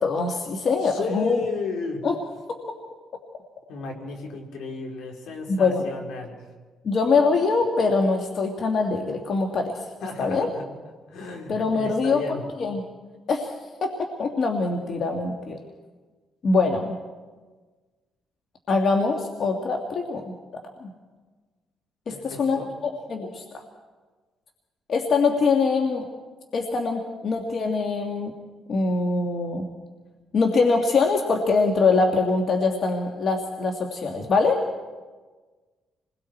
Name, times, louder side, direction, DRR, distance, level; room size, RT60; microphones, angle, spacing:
voice 1, 0.0-1.4 2.0-2.2 2.5-2.6 5.5-5.8 6.8-9.7 10.2-10.5 11.5-12.8 13.3-13.5 13.8-15.6 16.4-16.9 18.7-20.9 22.1-22.6 23.1-23.6 24.9-26.1 26.5-28.3 28.7-29.7 30.3-34.6, left 4 dB, 55° left, 3 dB, 2.1 m, -23 dB
voice 2, 0.8-2.0 3.7-6.4 10.0-10.7 11.1-12.4 22.1-22.7, left 4 dB, 85° left, 1 dB, 4.3 m, -33 dB
28.0 x 21.0 x 4.6 m, 1.4 s
cardioid pair, 90°, 0 cm